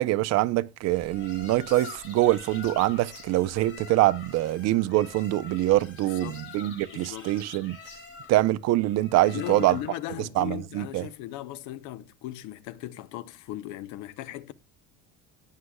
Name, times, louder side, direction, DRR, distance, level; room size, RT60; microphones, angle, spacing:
voice 1, 0.0-7.8 8.3-9.8 10.2-11.1, right 16 dB, 60° right, 0.7 m, -24 dB
sound 1, 0.8-10.1, left 5 dB, 40° left, 4.2 m, -45 dB
voice 2, 6.9-7.3 9.3-14.5, left 14 dB, 75° left, 0.9 m, -37 dB
17.5 x 6.6 x 2.3 m
cardioid pair, 115°, 29 cm